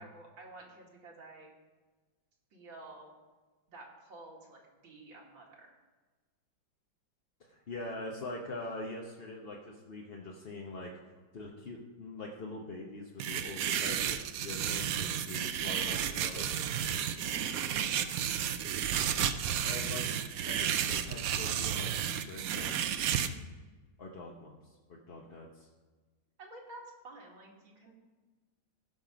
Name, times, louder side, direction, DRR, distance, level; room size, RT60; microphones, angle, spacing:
voice 1, 0.0-1.5 2.5-3.1 3.7-5.8 15.6-18.2 23.2-23.4 26.4-27.9, right 2 dB, 90° right, -2 dB, 2.9 m, -51 dB
voice 2, 7.4-10.9 11.3-16.5 19.6-20.1 20.5-21.9 22.3-23.0 24.0-25.7, left 2 dB, 40° left, -1 dB, 0.9 m, -43 dB
sound 1, 13.2-23.3, right 9 dB, 70° right, 0.8 m, -32 dB
16.0 x 5.9 x 5.1 m, 1.3 s
omnidirectional pair, 2.1 m